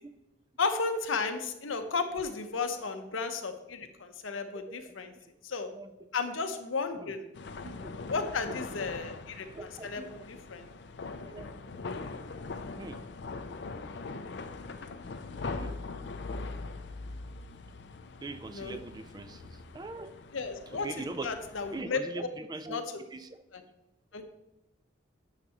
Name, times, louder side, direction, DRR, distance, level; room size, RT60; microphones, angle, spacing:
voice 1, 0.6-5.1 5.4-5.7 6.1-7.2 8.0-10.7 18.5-18.8 20.3-20.9 21.2-22.0 22.7-22.8 23.5-23.6 24.1-24.4, left 4 dB, 85° left, 7 dB, 0.8 m, -34 dB
sound 1, 7.3-21.8, left 3 dB, 60° left, 0.5 m, -41 dB
voice 2, 9.5-10.1 11.2-11.5 11.9-12.0 12.8-13.0 15.5-15.8 18.2-20.1 20.8-21.3 21.7-22.8 23.1-23.3, right 2 dB, 20° right, 10 dB, 0.4 m, -41 dB
9.7 x 6.7 x 3.0 m, 0.93 s
head